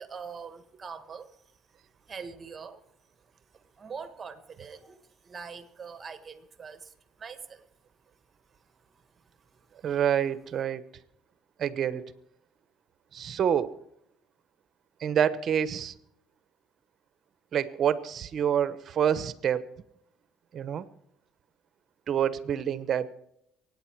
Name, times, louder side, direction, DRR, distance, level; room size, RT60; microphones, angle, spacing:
voice 1, 0.0-1.4 2.1-2.8 3.5-7.6 9.6-9.8, right 5 dB, 30° right, 1.5 m, -43 dB
voice 2, 9.8-10.8 11.6-12.0 13.1-13.8 15.0-15.9 17.5-19.6 20.5-20.9 22.1-23.1, right 9 dB, 50° right, 0.9 m, -27 dB
23.5 x 9.4 x 4.6 m
supercardioid pair, 95°, 0 cm